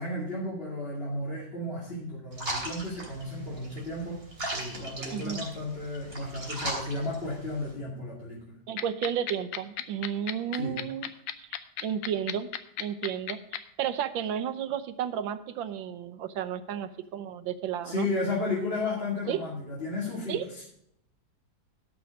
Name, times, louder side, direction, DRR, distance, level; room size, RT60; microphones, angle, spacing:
voice 1, 0.0-4.2 4.5-8.4 10.5-10.7 17.8-20.6, left 2 dB, 30° left, -5 dB, 2.5 m, -33 dB
sound 1, 2.3-7.7, right 1 dB, 30° right, 3.3 m, -38 dB
voice 2, 5.1-5.5 8.7-11.1 11.4-12.5 12.8-18.1 19.3-19.4 20.3-20.4, right 9 dB, 90° right, 12 dB, 1.6 m, -32 dB
sound 2, 8.8-13.6, left 11 dB, 90° left, 1.5 m, -33 dB
12.5 x 6.1 x 6.4 m, 0.74 s
omnidirectional pair, 2.0 m